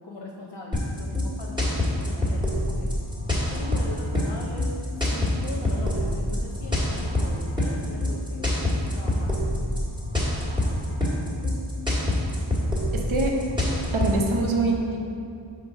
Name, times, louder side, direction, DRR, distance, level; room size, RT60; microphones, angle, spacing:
voice 1, 0.0-2.9 3.5-4.7 5.0-9.4, left 2 dB, 55° left, -2 dB, 0.7 m, -39 dB
sound 1, 0.7-14.3, left 1 dB, 10° right, 1.5 m, -25 dB
voice 2, 12.9-13.4 13.9-15.0, right 3 dB, 75° right, 0 dB, 0.7 m, -24 dB
5.6 x 4.0 x 5.2 m, 2.6 s
wide cardioid pair, 40°, 48 cm